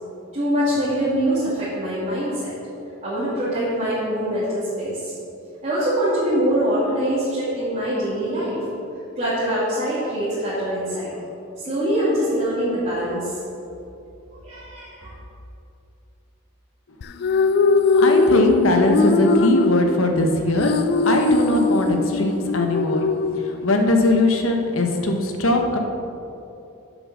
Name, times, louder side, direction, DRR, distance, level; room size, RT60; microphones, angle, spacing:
voice 1, 0.3-2.5 3.0-5.1 5.6-8.6 9.2-11.1 11.6-13.3 14.3-15.1, right 1 dB, 35° right, -11 dB, 2.5 m, -23 dB
sound 1, 17.0-24.0, left 3 dB, 50° left, 0.3 m, -21 dB
voice 2, 17.9-23.1 23.4-25.8, left 1 dB, 70° left, 3 dB, 1.1 m, -20 dB
7.8 x 7.3 x 6.2 m, 2.7 s
head